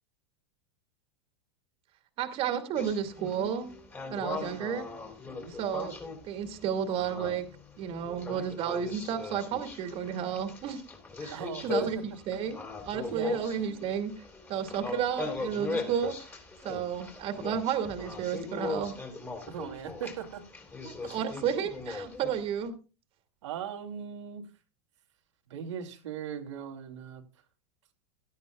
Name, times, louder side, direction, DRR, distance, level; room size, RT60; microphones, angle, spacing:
voice 1, 2.2-3.7 4.1-4.9 5.6-6.0 6.2-7.4 7.8-10.8 11.2-12.0 12.3-12.6 12.8-14.1 14.5-16.1 16.6-18.9 20.8-22.8, right 8 dB, 40° right, 6 dB, 2.3 m, -32 dB
sound 1, 2.7-22.7, left 4 dB, 15° left, 3.6 m, -39 dB
voice 2, 11.3-12.2 13.1-13.3 19.5-20.4 21.0-21.2 23.4-24.5 25.5-27.2, right 8 dB, 85° right, 2 dB, 2.7 m, -39 dB
17.0 x 13.0 x 2.4 m, 0.32 s
supercardioid pair, 135°, 15 cm